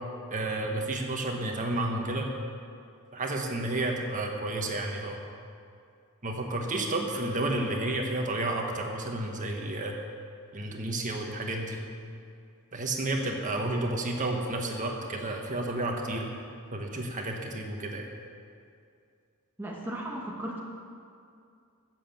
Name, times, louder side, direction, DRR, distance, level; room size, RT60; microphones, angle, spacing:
voice 1, 0.3-2.3 3.1-5.2 6.2-9.9 10.5-11.8 12.7-16.3 16.7-18.0, right 2 dB, 35° right, 1 dB, 1.5 m, -31 dB
voice 2, 19.6-20.6, right 1 dB, 10° right, -3 dB, 1.2 m, -36 dB
15.0 x 7.7 x 7.2 m, 2.4 s
head